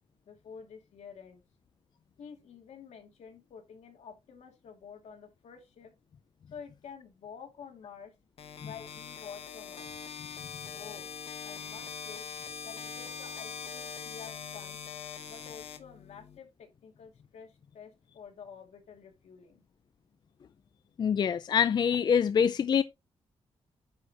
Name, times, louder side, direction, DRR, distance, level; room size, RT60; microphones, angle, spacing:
voice 1, 0.3-1.4 2.2-5.9 6.5-8.1 8.6-9.9 10.7-11.1 11.4-12.3 12.6-14.8 15.3-19.6, left 7 dB, 85° left, 2.3 m, -49 dB
sound 1, 8.4-16.4, left 7 dB, 60° left, 1.1 m, -42 dB
voice 2, 21.0-22.8, left 7 dB, 40° left, 0.4 m, -25 dB
9.4 x 6.3 x 2.9 m
wide cardioid pair, 160°, 11 cm